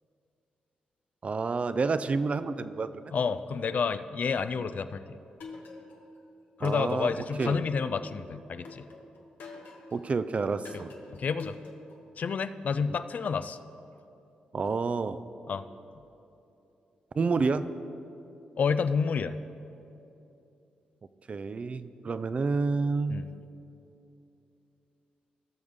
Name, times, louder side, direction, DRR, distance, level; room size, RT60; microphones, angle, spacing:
voice 1, 1.2-3.0 6.6-7.1 7.4-7.6 9.9-10.9 14.5-15.2 17.2-17.7 21.3-23.2, right 4 dB, 45° right, 12 dB, 0.4 m, -29 dB
voice 2, 3.1-5.2 6.6-8.9 10.7-10.8 11.1-11.6 12.2-13.6 15.5-15.7 18.6-19.4 23.1-23.3, left 5 dB, 60° left, 12 dB, 0.4 m, -29 dB
sound 1, 5.4-6.2 6.7-8.1 8.7-10.1 10.7-12.1, left 4 dB, 75° left, 1.1 m, -46 dB
17.5 x 6.4 x 3.6 m, 2.9 s
supercardioid pair, 55°, 3 cm